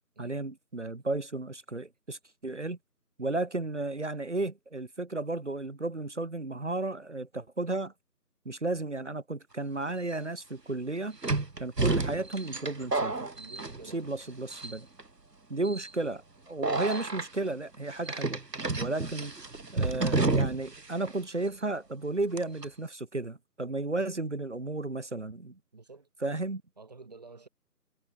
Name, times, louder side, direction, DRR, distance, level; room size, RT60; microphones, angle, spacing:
voice 1, 0.2-2.8 3.2-7.9 8.4-11.2 11.6-13.2 13.9-14.9 15.5-18.4 18.8-19.3 19.7-25.6 26.2-26.6, right 2 dB, 45° right, 1.7 m, -33 dB
sound 1, 9.9-10.0 11.2-14.2 14.5-15.0 15.6-15.9 16.6-17.3 18.1-20.8 21.1-21.2 22.4-22.7, right 3 dB, 80° right, 2.9 m, -30 dB
voice 2, 13.3-14.1 23.9-24.0 25.7-26.1 26.8-27.5, right 3 dB, 25° right, 4.7 m, -50 dB
figure-of-eight pair, 175°, 48 cm